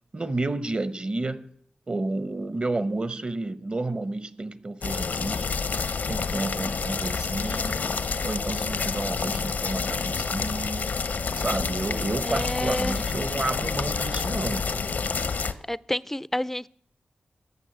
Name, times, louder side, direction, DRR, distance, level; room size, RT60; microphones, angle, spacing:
voice 1, 0.1-1.5 1.9-5.6 6.1-7.8 8.2-10.9 11.3-14.7, right 2 dB, 40° right, 0.9 m, -31 dB
sound 1, 4.8-15.5, left 5 dB, 80° left, 0.8 m, -28 dB
voice 2, 12.2-13.0 15.7-16.7, left 1 dB, 10° left, 0.4 m, -29 dB
14.0 x 6.1 x 9.2 m
cardioid pair, 50°, 3 cm